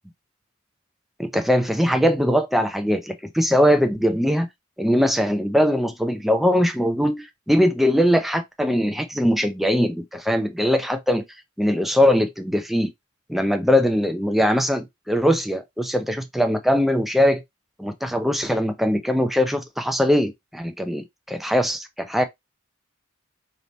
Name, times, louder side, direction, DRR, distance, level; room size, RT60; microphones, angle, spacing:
voice 1, 1.2-4.5 4.8-11.2 11.6-12.9 13.3-17.4 17.8-22.2, equal, ahead, 0.4 m, -21 dB
3.3 x 2.6 x 4.1 m
head